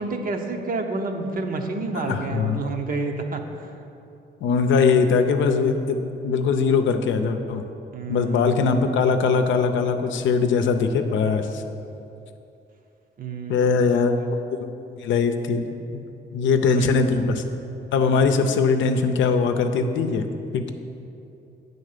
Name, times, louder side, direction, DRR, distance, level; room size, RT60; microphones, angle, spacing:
voice 1, 0.0-3.7 7.9-8.5 13.2-14.2 16.8-17.3, right 3 dB, 45° right, 4 dB, 0.8 m, -30 dB
voice 2, 1.9-2.6 4.4-6.0 6.2-7.6 8.1-11.6 13.5-14.1 15.0-16.0 16.3-17.4 17.9-20.3 20.5-20.7, left 5 dB, 75° left, 7 dB, 0.6 m, -21 dB
8.6 x 4.1 x 6.6 m, 2.7 s
cardioid pair, 90°, 20 cm